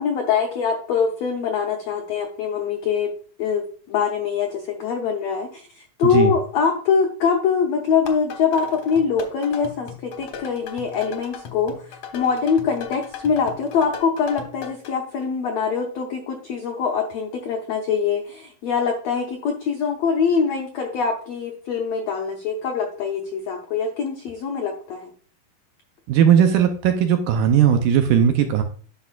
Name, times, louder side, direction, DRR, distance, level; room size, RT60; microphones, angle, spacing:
voice 1, 0.0-3.1 3.4-25.1, left 6 dB, 90° left, 2 dB, 1.4 m, -23 dB
voice 2, 6.0-6.3 26.1-28.6, right 8 dB, 80° right, 6 dB, 2.0 m, -17 dB
sound 1, 7.9-14.9, left 6 dB, 65° left, 1.6 m, -37 dB
10.0 x 5.9 x 2.4 m, 0.43 s
omnidirectional pair, 4.2 m